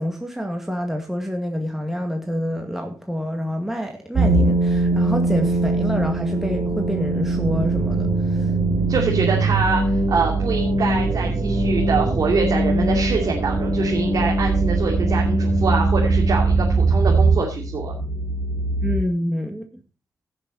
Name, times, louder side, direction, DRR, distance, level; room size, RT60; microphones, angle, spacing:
voice 1, 0.0-8.5 18.8-19.8, equal, 5° right, 2.0 m, -27 dB
sound 1, 4.2-19.0, right 2 dB, 85° right, 2.8 m, -21 dB
voice 2, 8.9-17.9, right 4 dB, 65° right, 2.6 m, -24 dB
16.5 x 6.9 x 4.0 m
cardioid pair, 80°, 7 cm